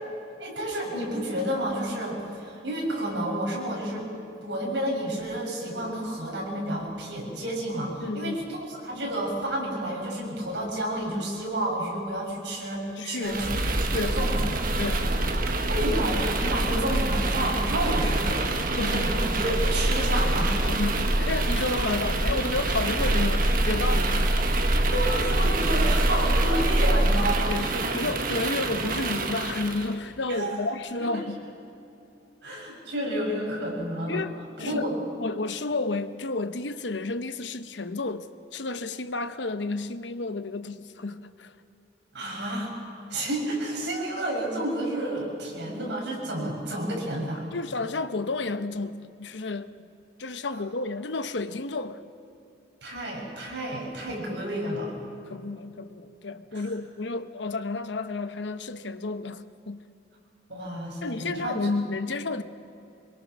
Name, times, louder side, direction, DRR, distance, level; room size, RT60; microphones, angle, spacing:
voice 1, 0.4-4.1 4.4-13.5 14.0-14.5 15.7-18.4 18.9-20.5 24.1-24.2 24.9-27.7 30.3-30.7 31.0-31.1 32.4-34.2 34.6-34.9 42.1-42.7 43.1-47.4 52.8-54.9 56.5-56.7 60.5-61.7, right 1 dB, 75° right, 7.0 m, -30 dB
voice 2, 8.0-8.4 13.0-13.4 13.9-14.1 14.8-15.1 18.6-19.1 20.6-24.3 27.5-31.4 34.1-34.9 35.2-41.5 47.5-49.8 50.2-52.0 55.3-59.8 61.0-62.4, left 3 dB, 80° left, 0.9 m, -31 dB
sound 1, 13.2-29.9, right 1 dB, 50° right, 1.5 m, -25 dB
25.0 x 22.5 x 6.2 m
head